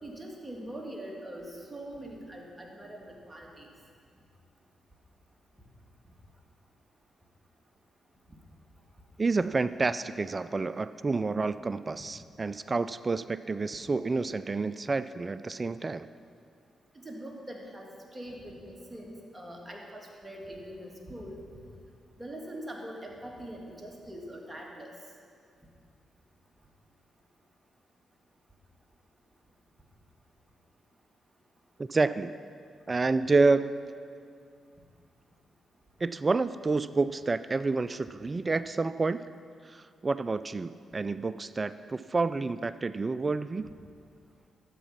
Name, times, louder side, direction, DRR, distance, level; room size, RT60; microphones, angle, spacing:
voice 1, 0.0-3.7 16.9-21.4 22.2-25.0, right 1 dB, 15° right, -1 dB, 2.6 m, -43 dB
voice 2, 9.2-16.1 31.8-32.3 32.9-33.7 36.0-39.3 39.6-43.7, right 3 dB, 35° right, 15 dB, 0.3 m, -29 dB
12.0 x 8.3 x 5.9 m, 2.2 s
hypercardioid pair, 45°, 0 cm